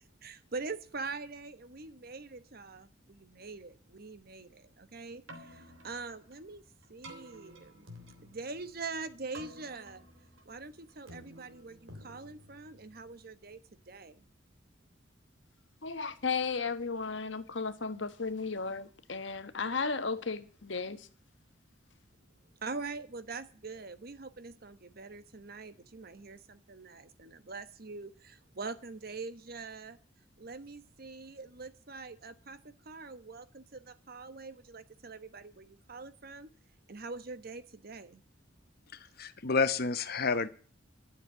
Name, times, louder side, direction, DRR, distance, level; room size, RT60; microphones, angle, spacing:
voice 1, 0.2-6.6 6.9-7.9 8.2-10.0 10.4-13.6 13.9-14.2 22.6-30.0 30.4-36.5 36.9-38.2, right 4 dB, 50° right, 1.1 m, -44 dB
Keyboard (musical), 5.1-13.3, equal, 85° right, 3.3 m, -53 dB
voice 2, 15.8-21.1, left 4 dB, 70° left, 1.3 m, -34 dB
voice 3, 39.2-40.5, left 4 dB, 50° left, 1.0 m, -29 dB
12.5 x 7.3 x 8.7 m
head